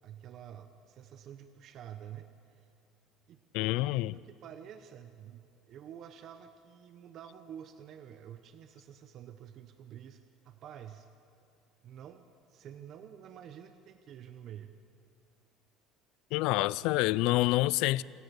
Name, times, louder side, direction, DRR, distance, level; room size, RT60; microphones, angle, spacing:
voice 1, 0.0-2.7 3.3-3.7 4.1-11.1 11.8-14.7, right 9 dB, 50° right, 0.9 m, -49 dB
voice 2, 3.5-4.1 16.3-18.0, left 18 dB, 75° left, 0.4 m, -27 dB
26.0 x 13.5 x 8.1 m
cardioid pair, 135°, 0 cm